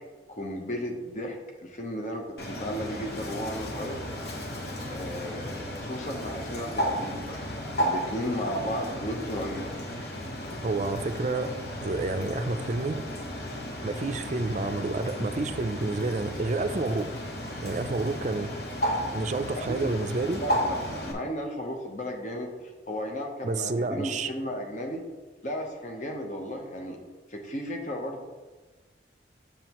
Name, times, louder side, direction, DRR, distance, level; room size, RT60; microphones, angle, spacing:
voice 1, 0.3-4.0 4.9-7.4 7.8-9.7 19.7-19.9 20.3-25.1 25.4-27.0 27.3-28.2, equal, 40° left, 2 dB, 0.8 m, -34 dB
Bird, 2.4-21.1, equal, 60° left, 1.2 m, -34 dB
voice 2, 10.6-11.5 11.8-13.0 13.8-17.1 17.6-18.5 19.1-20.4 23.4-24.3, right 3 dB, 40° right, 9 dB, 0.4 m, -29 dB
7.5 x 6.9 x 3.0 m, 1.3 s
head